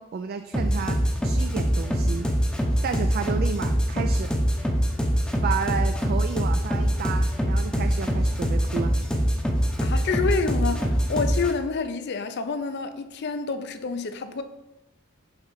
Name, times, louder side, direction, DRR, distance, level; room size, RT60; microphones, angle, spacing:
voice 1, 0.0-2.3 2.8-4.3 5.4-9.0, right 6 dB, 45° right, 0.3 m, -31 dB
sound 1, 0.5-11.5, equal, 5° left, 0.7 m, -24 dB
voice 2, 9.8-14.4, left 4 dB, 55° left, 0.5 m, -28 dB
5.8 x 3.8 x 5.6 m
head